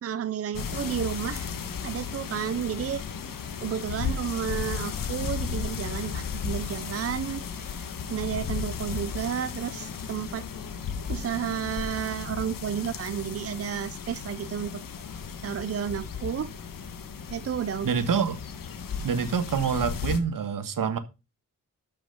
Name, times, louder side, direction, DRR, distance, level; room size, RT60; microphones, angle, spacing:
voice 1, 0.0-1.5 1.8-3.0 3.6-10.4 11.1-16.5 17.3-17.9, right 8 dB, 45° right, 0.6 m, -32 dB
sound 1, 0.5-20.2, left 6 dB, 80° left, 1.6 m, -35 dB
voice 2, 17.8-18.4 19.0-21.0, right 6 dB, 80° right, 1.6 m, -26 dB
12.5 x 6.0 x 5.4 m
wide cardioid pair, 125°, 33 cm